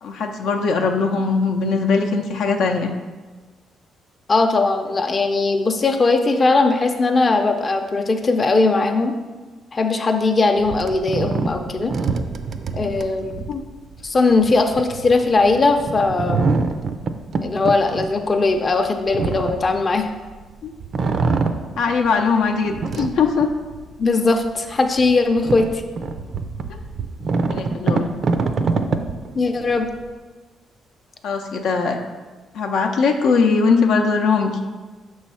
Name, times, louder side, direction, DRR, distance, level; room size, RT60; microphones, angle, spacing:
voice 1, 0.0-2.9 12.8-13.1 13.5-13.6 20.6-20.7 21.8-23.5 26.7-26.8 27.5-28.1 31.2-32.1 32.5-34.5, left 4 dB, 80° left, 2 dB, 0.6 m, -20 dB
voice 2, 4.3-9.1 9.7-11.9 12.7-13.3 14.0-16.5 17.4-20.1 24.0-25.7 29.4-29.9, left 3 dB, 35° left, 4 dB, 0.5 m, -19 dB
sound 1, 10.6-20.4 20.8-22.2 22.6-24.0 24.4-24.5 25.0-30.1, right 4 dB, 55° right, 0.4 m, -25 dB
6.2 x 3.1 x 5.6 m, 1.3 s
cardioid pair, 90°, 0 cm